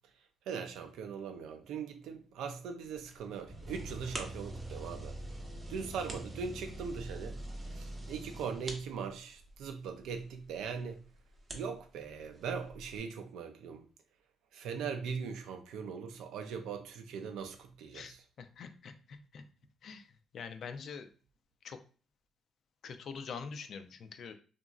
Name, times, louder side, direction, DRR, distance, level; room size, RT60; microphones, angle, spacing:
voice 1, 0.5-5.2 5.7-7.4 7.7-11.0 11.5-13.8 14.5-18.2, right 6 dB, 85° right, 0.4 m, -40 dB
sound 1, 2.8-13.0, right 2 dB, 35° right, 0.7 m, -52 dB
sound 2, 3.5-8.9, right 1 dB, 20° right, 1.0 m, -44 dB
voice 2, 17.9-19.4 19.8-21.1 21.6-21.8 22.8-24.3, left 5 dB, 65° left, 0.3 m, -45 dB
2.9 x 2.5 x 2.3 m
cardioid pair, 90°, 0 cm